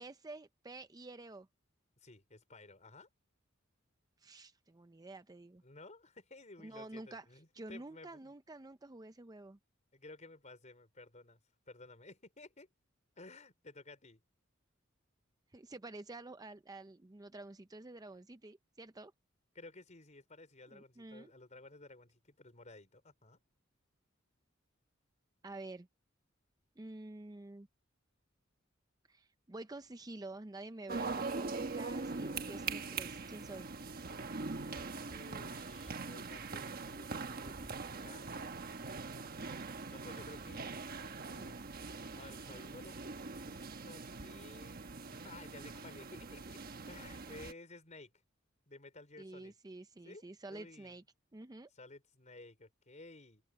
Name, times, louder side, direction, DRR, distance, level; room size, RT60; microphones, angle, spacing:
voice 1, 0.0-1.5 4.2-5.6 6.6-7.3 7.5-9.6 15.5-19.1 20.7-21.3 25.4-25.9 26.8-27.7 29.1-33.7 49.2-51.0 51.3-51.7, right 2 dB, 20° right, 0.6 m, -49 dB
voice 2, 2.0-3.1 5.6-8.3 9.9-11.4 11.7-12.7 13.2-14.2 19.5-23.4 35.0-38.5 39.9-41.6 42.1-44.8 45.1-46.6 46.9-48.1 48.7-49.5 50.0-50.2 50.5-51.0 51.7-53.4, left 2 dB, 35° left, 4.8 m, -55 dB
sound 1, 30.9-47.5, right 4 dB, 50° right, 1.2 m, -42 dB
open air
head